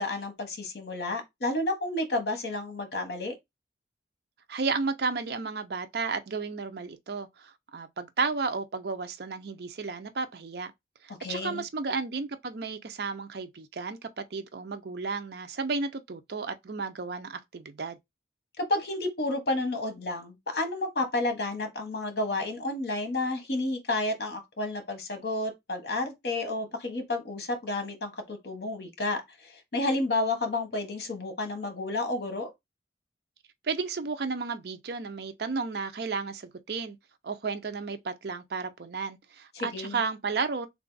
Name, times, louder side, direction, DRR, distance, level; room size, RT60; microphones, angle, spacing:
voice 1, 0.0-3.3 11.2-11.6 18.6-32.5 39.5-40.0, left 2 dB, 60° left, 0.9 m, -31 dB
voice 2, 4.5-10.7 11.0-18.0 33.6-37.0 37.2-40.7, right 4 dB, 60° right, 0.5 m, -33 dB
3.3 x 2.4 x 3.8 m
head